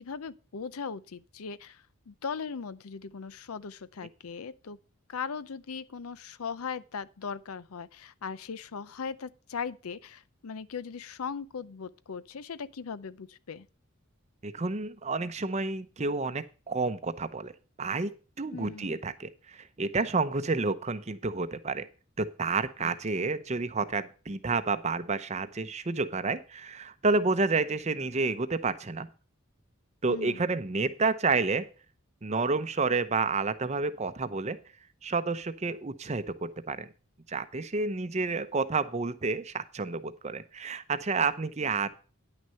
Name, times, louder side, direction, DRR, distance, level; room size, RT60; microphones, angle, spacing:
voice 1, 0.0-4.8 5.1-13.7 18.5-19.0 22.8-22.9 23.2-23.3 30.1-30.5, left 6 dB, 90° left, 0.6 m, -39 dB
voice 2, 14.4-17.5 17.8-18.1 18.4-21.9 22.2-29.1 30.0-31.7 32.2-34.6 35.0-36.9 37.3-41.9, right 3 dB, 30° right, 0.7 m, -30 dB
10.0 x 6.3 x 5.6 m
head